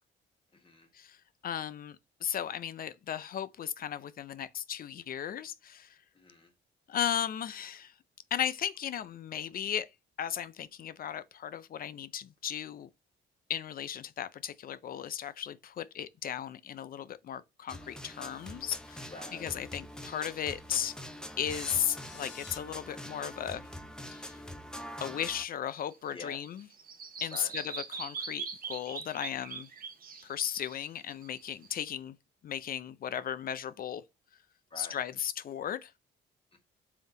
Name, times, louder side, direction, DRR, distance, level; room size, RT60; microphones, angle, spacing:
voice 1, 0.5-0.9 6.1-6.5 19.1-19.6 26.1-26.4 27.3-27.5 34.7-35.0 36.5-36.6, left 3 dB, 25° left, 1.3 m, -47 dB
voice 2, 1.4-2.0 2.2-6.0 6.9-7.9 8.3-9.9 10.2-12.9 13.5-20.9 21.4-23.7 24.1-24.4 25.0-26.7 27.2-29.7 30.2-32.2 32.4-34.0 34.8-35.9, left 9 dB, 50° left, 0.4 m, -36 dB
sound 1, 17.7-25.4, left 1 dB, 5° left, 0.6 m, -44 dB
sound 2, 21.5-22.6, left 7 dB, 65° left, 1.0 m, -51 dB
Bird vocalization bird call bird song, 25.8-31.7, right 5 dB, 45° right, 0.8 m, -42 dB
3.5 x 2.7 x 3.6 m
cardioid pair, 90°, 20 cm